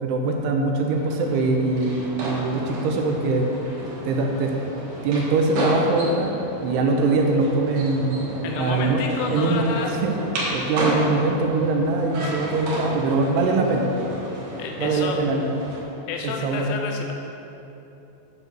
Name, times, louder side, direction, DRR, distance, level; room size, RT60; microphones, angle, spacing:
voice 1, 0.0-3.5 4.0-4.5 5.0-10.2 10.5-14.0 14.8-15.5 16.2-17.0, right 3 dB, 80° right, 2 dB, 2.6 m, -23 dB
sound 1, 0.9-15.8, right 1 dB, 55° right, 2.2 m, -32 dB
voice 2, 8.4-10.0 14.6-15.2 16.1-17.1, left 5 dB, 90° left, 2 dB, 3.1 m, -30 dB
9.9 x 4.6 x 6.6 m, 3.0 s
omnidirectional pair, 5.3 m